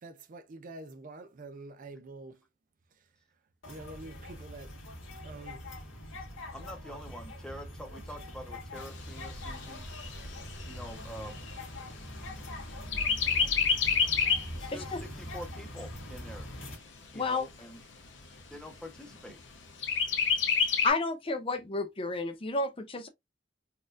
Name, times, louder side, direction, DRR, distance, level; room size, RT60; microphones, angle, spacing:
voice 1, 0.0-2.4 3.7-4.7 5.2-5.6, right 2 dB, 45° right, 0.4 m, -46 dB
sound 1, 3.6-16.8, left 1 dB, 90° left, 1.6 m, -43 dB
voice 2, 6.5-9.9 10.7-11.5 14.5-16.5 17.1-17.8 18.5-19.4, equal, 5° left, 0.8 m, -46 dB
Chirp tweet, 8.8-12.5 12.9-14.6 15.0-15.1 15.5-16.5 17.1-17.2 17.5-17.6 18.0-18.6 19.8-20.9, left 6 dB, 70° left, 0.8 m, -29 dB
voice 3, 20.8-23.1, left 3 dB, 30° left, 0.5 m, -31 dB
4.1 x 2.4 x 2.5 m
head